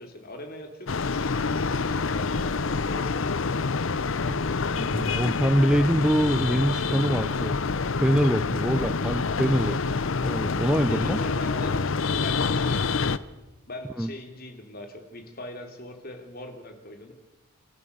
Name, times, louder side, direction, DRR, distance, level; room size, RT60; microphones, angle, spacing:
voice 1, 0.0-3.2 10.9-11.8 12.1-13.2 13.7-17.1, left 1 dB, 45° left, 4 dB, 3.1 m, -41 dB
sound 1, 0.9-13.2, left 4 dB, 60° left, 0.7 m, -27 dB
voice 2, 4.7-7.6 8.0-9.8 10.2-11.2 14.0-14.1, equal, 5° right, 10 dB, 0.6 m, -24 dB
28.0 x 14.0 x 6.9 m, 1.0 s
head